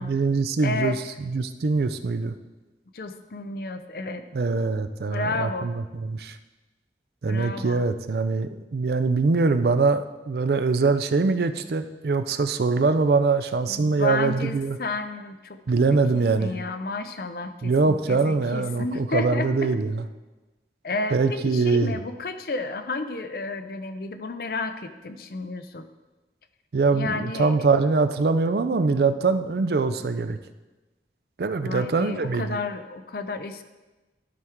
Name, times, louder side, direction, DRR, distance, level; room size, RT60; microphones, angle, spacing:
voice 1, 0.0-2.3 4.3-6.4 7.2-14.8 15.7-16.5 17.6-20.1 21.1-22.0 26.7-30.4 31.4-32.6, right 4 dB, 60° right, 10 dB, 0.4 m, -23 dB
voice 2, 0.6-1.0 2.9-4.2 5.1-5.7 7.3-7.8 13.7-15.6 16.1-19.7 20.8-25.8 26.9-27.5 31.6-33.6, left 3 dB, 55° left, 8 dB, 0.5 m, -31 dB
12.5 x 4.6 x 3.6 m, 1.1 s
head